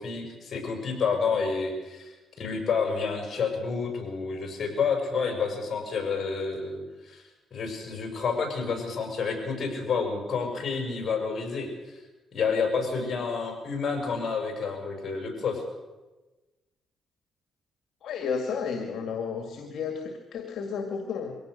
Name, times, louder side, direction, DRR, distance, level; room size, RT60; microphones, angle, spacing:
voice 1, 0.0-7.2 7.5-12.0 12.3-15.6, left 5 dB, 50° left, 3 dB, 6.5 m, -29 dB
voice 2, 18.0-21.3, left 6 dB, 70° left, 4 dB, 2.2 m, -32 dB
23.0 x 17.5 x 6.6 m, 1.1 s
cardioid pair, 85°, 0 cm